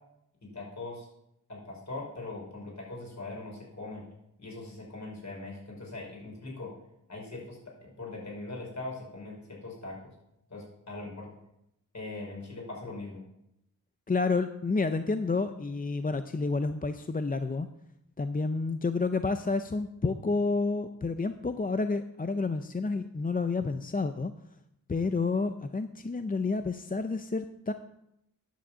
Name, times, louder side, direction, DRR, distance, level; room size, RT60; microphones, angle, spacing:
voice 1, 0.4-1.1 1.5-4.0 4.4-6.7 7.1-10.0 10.5-11.3 11.9-13.2, left 2 dB, 50° left, -2 dB, 5.2 m, -41 dB
voice 2, 14.1-17.7 18.2-24.3 24.9-27.7, left 3 dB, 25° left, 9 dB, 0.5 m, -30 dB
10.5 x 6.9 x 7.4 m, 0.82 s
wide cardioid pair, 85°, 35 cm